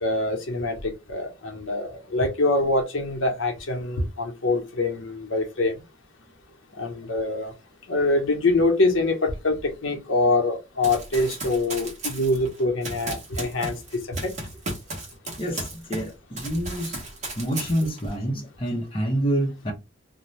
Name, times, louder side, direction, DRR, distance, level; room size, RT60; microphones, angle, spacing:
voice 1, 0.0-5.7 6.8-7.5 7.9-9.6 9.8-14.3, left 2 dB, 80° left, 0.8 m, -24 dB
Run, 10.8-16.1 16.4-18.1, right 2 dB, 35° right, 1.0 m, -35 dB
voice 2, 15.4-17.0 17.4-19.7, right 1 dB, 25° left, 0.6 m, -27 dB
2.6 x 2.1 x 3.1 m
head